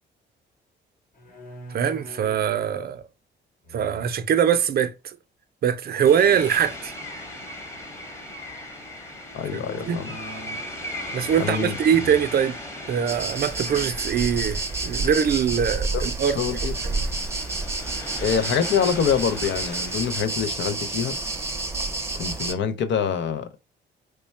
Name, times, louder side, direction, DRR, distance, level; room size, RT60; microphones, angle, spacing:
sound 1, 1.1-2.5 3.6-4.4 5.9-6.5 9.4-10.8 11.1-11.6 11.9-12.3 12.9-13.0 13.3-14.1, right 1 dB, 45° left, 1.0 m, -42 dB
voice 1, 1.7-3.0 3.7-5.2 5.6-6.9 9.5-10.0 11.1-12.6 12.9-16.6 16.8-17.0, right 8 dB, 50° right, 0.5 m, -23 dB
sound 2, 6.0-20.1, left 1 dB, 15° left, 1.1 m, -38 dB
voice 2, 9.3-10.1 11.4-11.8 15.9-16.1 16.4-16.7 18.2-21.2 22.2-23.5, left 7 dB, 65° left, 0.5 m, -25 dB
sound 3, 13.1-22.5, right 3 dB, 15° right, 0.7 m, -29 dB
3.2 x 2.1 x 4.2 m
cardioid pair, 90°, 20 cm